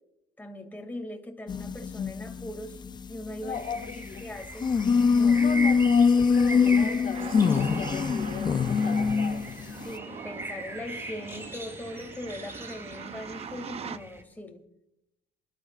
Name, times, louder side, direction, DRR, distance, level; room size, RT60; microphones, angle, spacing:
voice 1, 0.4-2.8 3.1-3.6 3.8-3.9 4.2-4.8 5.1-5.4 9.8-14.6, left 1 dB, 10° left, 3 dB, 2.3 m, -40 dB
sound 1, 1.5-4.2 4.6-9.9, left 5 dB, 25° left, 0.4 m, -24 dB
voice 2, 3.4-4.3 5.3-9.4, left 7 dB, 50° left, 3 dB, 1.7 m, -38 dB
sound 2, 3.5-14.2, right 2 dB, 15° right, 2.1 m, -41 dB
sound 3, 7.1-14.0, right 7 dB, 35° right, 0.6 m, -42 dB
28.0 x 11.5 x 2.4 m, 0.88 s
cardioid pair, 110°, 17 cm